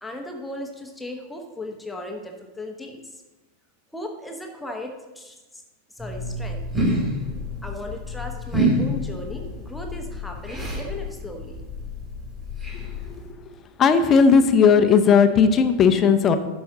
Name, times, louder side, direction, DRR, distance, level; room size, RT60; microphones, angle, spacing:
voice 1, 0.0-3.2 3.9-5.6 5.9-6.7 7.6-11.6, left 1 dB, 5° left, 2 dB, 1.0 m, -36 dB
sound 1, 6.0-13.3, equal, 15° right, 3.0 m, -28 dB
voice 2, 13.8-16.4, left 6 dB, 25° left, 8 dB, 0.7 m, -16 dB
12.5 x 5.2 x 3.8 m, 1.2 s
figure-of-eight pair, 90°, 0 cm